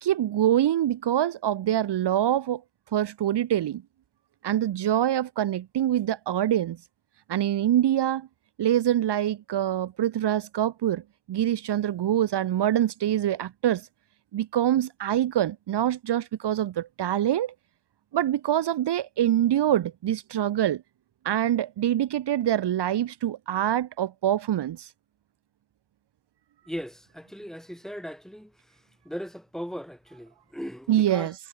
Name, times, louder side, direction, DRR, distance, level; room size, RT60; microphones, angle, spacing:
voice 1, 0.0-2.6 2.9-3.8 4.4-6.8 7.3-8.3 8.6-11.0 11.3-13.9 14.3-17.5 18.1-20.8 21.2-24.9 30.9-31.3, right 11 dB, 55° right, 2.7 m, -25 dB
voice 2, 26.7-28.5 29.1-31.3, equal, ahead, 7.0 m, -38 dB
supercardioid pair, 85°, 49 cm